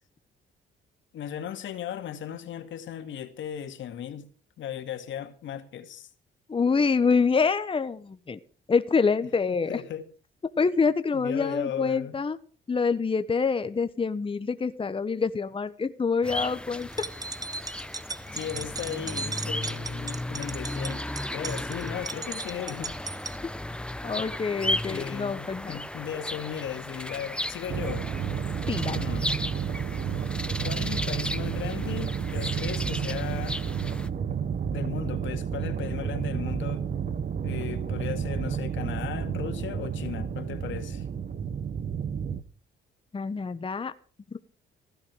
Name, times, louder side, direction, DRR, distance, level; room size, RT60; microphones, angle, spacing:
voice 1, 1.1-4.3 4.6-6.1 9.5-10.1 11.1-12.1 18.3-21.0 21.3-23.0 24.9-28.1 28.8-29.3 30.6-33.6 34.7-36.9 37.4-41.1, left 9 dB, 75° left, 2.2 m, -36 dB
voice 2, 6.5-8.4 8.7-9.8 10.6-12.4 12.7-16.9 24.0-25.8 28.7-29.0 43.1-43.9, left 5 dB, 25° left, 1.1 m, -26 dB
Carpark in a scottish toon, 16.2-34.1, left 1 dB, 5° left, 1.0 m, -35 dB
sound 1, 16.8-23.4, right 3 dB, 20° right, 1.1 m, -37 dB
sound 2, 27.7-42.4, right 7 dB, 50° right, 1.4 m, -31 dB
16.0 x 11.5 x 6.2 m
cardioid pair, 90°, 20 cm